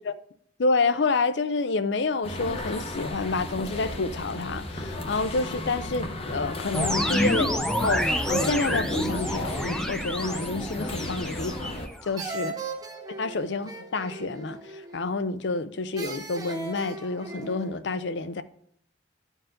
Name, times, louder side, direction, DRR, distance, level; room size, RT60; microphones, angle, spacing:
voice 1, 0.6-12.6 13.2-18.4, left 3 dB, 75° left, 0.5 m, -29 dB
sound 1, 2.2-11.9, left 1 dB, 30° left, 0.8 m, -35 dB
sound 2, 6.7-12.2, equal, 5° left, 0.5 m, -28 dB
sound 3, 11.4-11.9 12.2-15.2 16.0-17.8, right 3 dB, 20° right, 0.9 m, -38 dB
12.5 x 4.6 x 3.8 m
head